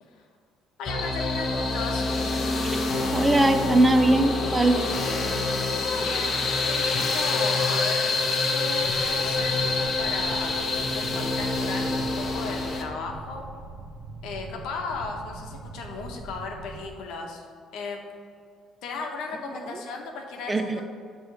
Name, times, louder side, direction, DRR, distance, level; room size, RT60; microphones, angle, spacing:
voice 1, 0.8-2.1 5.8-10.6 10.9-13.5 14.2-17.4 17.7-18.0 18.8-20.8, left 4 dB, 80° left, 1 dB, 0.9 m, -36 dB
sound 1, 0.8-12.8, left 3 dB, 35° left, 0.7 m, -26 dB
voice 2, 3.1-4.8 20.5-20.8, right 2 dB, 15° right, 7 dB, 0.3 m, -20 dB
sound 2, 8.8-16.9, right 3 dB, 80° right, 0.6 m, -43 dB
8.0 x 3.0 x 4.7 m, 2.2 s
cardioid pair, 145°, 0 cm